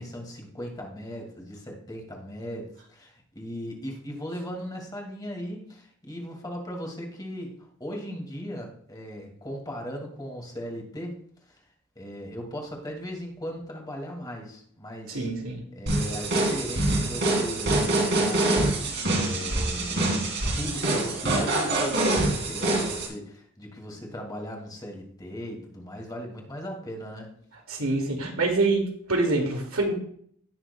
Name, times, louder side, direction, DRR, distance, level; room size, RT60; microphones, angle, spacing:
voice 1, 0.0-11.2 11.5-11.6 12.0-15.3 15.7-18.5 19.1-27.3, equal, 20° left, 1 dB, 2.1 m, -38 dB
voice 2, 15.1-15.6 27.7-28.8 29.1-29.9, right 2 dB, 75° right, 2 dB, 2.2 m, -25 dB
sound 1, 15.9-23.1, right 2 dB, 55° right, 2.8 m, -25 dB
17.5 x 6.5 x 2.2 m, 0.62 s
head